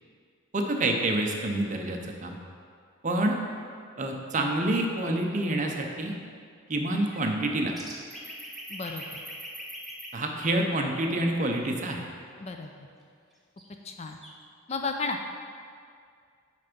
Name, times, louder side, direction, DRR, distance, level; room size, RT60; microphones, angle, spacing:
voice 1, 0.5-2.4 3.0-3.3 4.0-6.1 6.7-7.7 10.1-12.1, right 1 dB, 35° right, 2 dB, 0.6 m, -27 dB
sound 1, 7.0-10.1 13.6-13.7 13.9-14.3, right 1 dB, ahead, 0.8 m, -41 dB
voice 2, 8.7-9.2 12.4-12.7 13.8-14.2 14.7-15.2, left 4 dB, 30° left, 4 dB, 0.4 m, -33 dB
9.2 x 3.4 x 5.2 m, 2.2 s
head